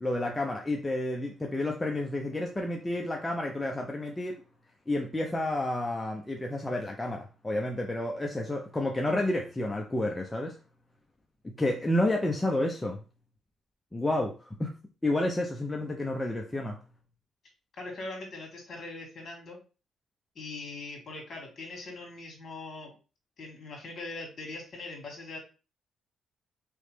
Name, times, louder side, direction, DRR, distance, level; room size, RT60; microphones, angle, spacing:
voice 1, 0.0-4.4 4.9-10.6 11.4-13.0 13.9-14.7 15.0-16.8, left 1 dB, 15° left, 0.6 m, -30 dB
voice 2, 17.7-19.6 20.4-22.9 23.4-25.4, left 2 dB, 50° left, 1.8 m, -41 dB
3.8 x 3.3 x 3.2 m
cardioid pair, 90°, 0 cm